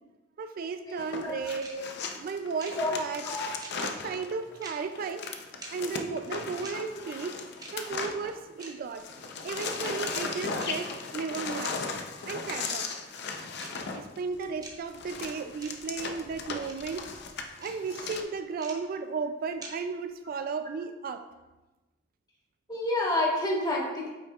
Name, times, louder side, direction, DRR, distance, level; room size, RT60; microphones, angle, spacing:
voice 1, 0.4-1.7 2.2-3.2 3.8-5.3 5.7-7.4 7.7-9.0 9.4-11.8 12.3-12.9 13.9-17.1 17.6-21.2, right 5 dB, 50° right, 9 dB, 0.3 m, -34 dB
sound 1, 1.0-8.7 8.9-18.2, left 4 dB, 60° left, 0.6 m, -37 dB
sound 2, 1.6-1.7 2.6-2.7 3.6-3.7 4.6-4.7 5.6-5.7 6.6-6.7 7.6-7.7 8.6-8.7 9.6-9.7 10.6-10.7 11.6-11.7 12.6-12.7 13.6-13.7 14.6-14.7 15.6-15.7 16.6-16.7 17.6-17.7 18.6-18.7 19.6-19.7, right 3 dB, 20° right, 0.9 m, -43 dB
voice 2, 22.7-24.1, left 1 dB, 20° left, -3 dB, 1.4 m, -28 dB
8.4 x 5.5 x 2.4 m, 1.1 s
head